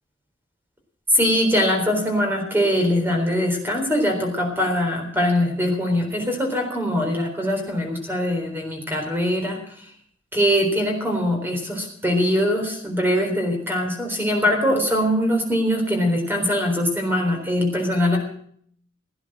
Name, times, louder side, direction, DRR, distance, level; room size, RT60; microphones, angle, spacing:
voice 1, 1.1-9.6 10.3-18.2, equal, 10° right, 2 dB, 3.9 m, -22 dB
17.0 x 10.0 x 7.5 m, 0.63 s
head